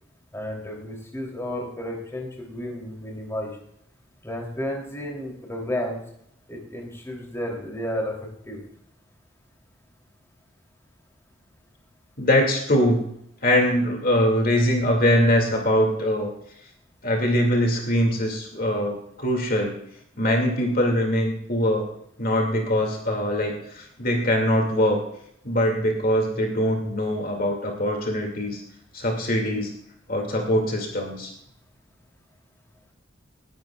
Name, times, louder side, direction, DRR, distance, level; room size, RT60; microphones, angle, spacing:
voice 1, 0.3-3.6 4.2-6.0 6.5-8.6, left 1 dB, 15° left, 0 dB, 3.2 m, -32 dB
voice 2, 12.2-13.0 13.4-16.3 17.0-19.8 20.2-21.9 22.2-25.0 25.4-28.6 28.9-29.7 30.1-31.3, equal, 50° left, 1 dB, 2.4 m, -22 dB
20.5 x 12.0 x 2.4 m, 0.71 s
head